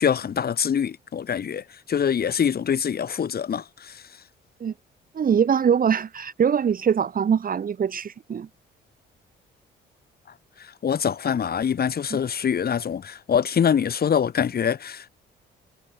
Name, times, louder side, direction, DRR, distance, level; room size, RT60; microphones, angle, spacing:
voice 1, 0.0-4.0 10.8-15.1, left 8 dB, 50° left, 3.2 m, -24 dB
voice 2, 5.1-8.5 12.1-12.2, right 7 dB, 45° right, 1.6 m, -22 dB
cardioid pair, 90°, 20 cm